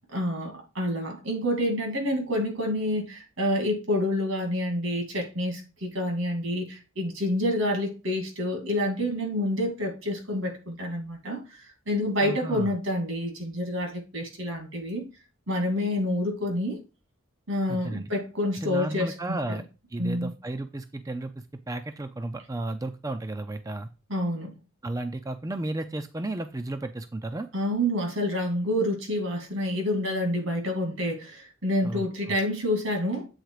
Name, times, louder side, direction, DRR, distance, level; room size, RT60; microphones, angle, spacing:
voice 1, 0.1-15.1 15.5-16.8 17.5-19.6 20.0-20.3 24.1-24.6 27.5-33.3, left 1 dB, 75° right, 2.6 m, -28 dB
voice 2, 12.2-12.7 17.7-18.1 18.6-19.6 19.9-21.3 21.7-23.9 24.8-27.5 31.8-32.0, right 2 dB, 15° right, 0.4 m, -33 dB
8.0 x 3.9 x 4.8 m
head